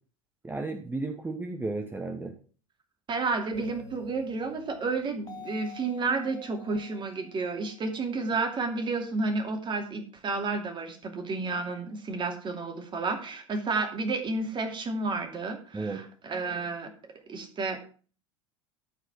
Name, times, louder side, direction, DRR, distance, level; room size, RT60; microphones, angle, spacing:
voice 1, 0.4-2.4 15.7-16.1, right 3 dB, 10° right, 5 dB, 1.1 m, -33 dB
voice 2, 3.1-16.9 17.3-17.8, right 3 dB, 30° right, 4 dB, 2.6 m, -31 dB
sound 1, 3.5-8.2, left 5 dB, 20° left, 2.0 m, -49 dB
13.5 x 4.9 x 6.0 m, 0.40 s
figure-of-eight pair, 75°, 16 cm